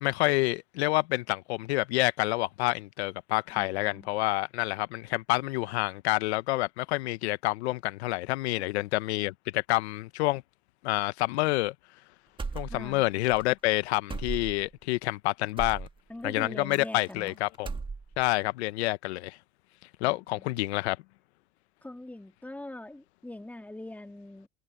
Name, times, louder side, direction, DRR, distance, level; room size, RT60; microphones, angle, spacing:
voice 1, 0.0-10.4 10.8-11.7 12.5-15.9 16.2-17.7 18.2-19.4 20.0-21.0, left 20 dB, 75° left, 1.0 m, -28 dB
voice 2, 3.5-4.1 8.5-8.7 12.7-13.0 16.1-17.4 21.8-24.5, left 1 dB, 5° left, 2.6 m, -42 dB
sound 1, 12.4-13.1 13.3-13.5 14.1-14.7 15.6-15.9 16.7-17.3 17.5-18.3, right 4 dB, 15° right, 1.7 m, -36 dB
supercardioid pair, 110°, 33 cm